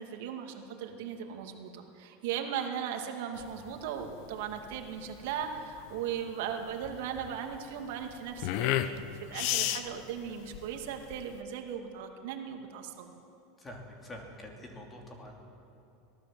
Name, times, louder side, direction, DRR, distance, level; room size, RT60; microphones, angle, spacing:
voice 1, 0.0-13.2, right 8 dB, 65° right, 4 dB, 2.3 m, -38 dB
sound 1, 3.4-11.4, left 12 dB, 50° left, 0.9 m, -35 dB
voice 2, 13.6-15.3, left 1 dB, 15° left, 1 dB, 3.0 m, -46 dB
24.5 x 18.0 x 7.7 m, 2.8 s
supercardioid pair, 160°, 0 cm